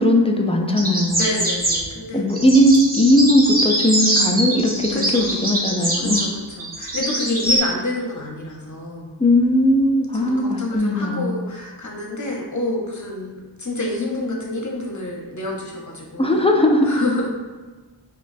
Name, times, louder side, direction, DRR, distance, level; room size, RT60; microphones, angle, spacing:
voice 1, 0.0-1.3 2.1-6.2 9.2-11.4 16.2-16.9, left 1 dB, 15° left, 1 dB, 0.3 m, -18 dB
sound 1, 0.8-1.8 2.3-7.6, right 1 dB, 20° right, 0.9 m, -23 dB
voice 2, 1.1-2.4 4.9-5.4 6.0-6.3 6.6-9.1 10.1-16.5 16.8-17.3, left 2 dB, 40° left, -1 dB, 0.8 m, -28 dB
5.1 x 2.2 x 2.5 m, 1.3 s
wide cardioid pair, 60°, 48 cm